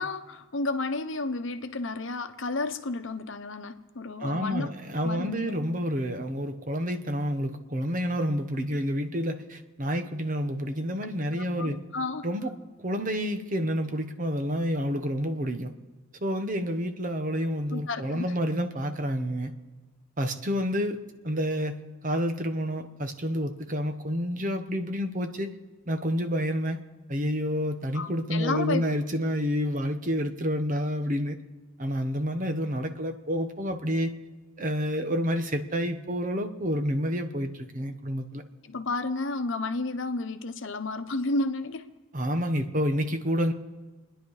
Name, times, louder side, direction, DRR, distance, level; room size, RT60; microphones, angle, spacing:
voice 1, 0.0-4.7 5.0-5.5 11.0-12.3 17.7-18.4 27.9-28.8 38.6-41.9, left 3 dB, 65° left, 9 dB, 0.9 m, -32 dB
voice 2, 4.2-11.8 12.2-12.5 12.8-15.7 16.2-19.5 20.2-21.0 21.2-25.5 25.9-26.8 27.1-31.4 31.8-34.1 34.6-38.4 42.1-43.5, equal, 40° right, 7 dB, 1.1 m, -29 dB
28.0 x 10.5 x 4.9 m, 1.3 s
head